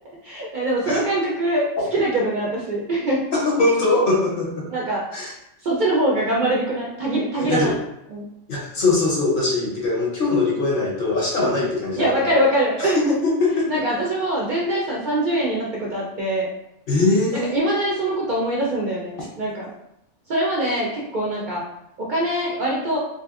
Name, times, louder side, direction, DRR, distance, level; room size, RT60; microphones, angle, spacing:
voice 1, 0.2-3.2 4.7-5.3 5.6-7.7 8.1-8.2 11.4-11.6 12.0-13.2 13.7-16.5 17.5-19.7 20.3-21.6 22.0-23.0, right 1 dB, 55° right, -4 dB, 0.6 m, -23 dB
voice 2, 3.3-4.7 5.1-5.3 7.4-7.8 8.5-12.4 12.8-14.0 16.9-17.5 19.2-19.3, left 2 dB, 55° left, -3 dB, 0.8 m, -22 dB
2.8 x 2.5 x 2.3 m, 0.81 s
omnidirectional pair, 1.2 m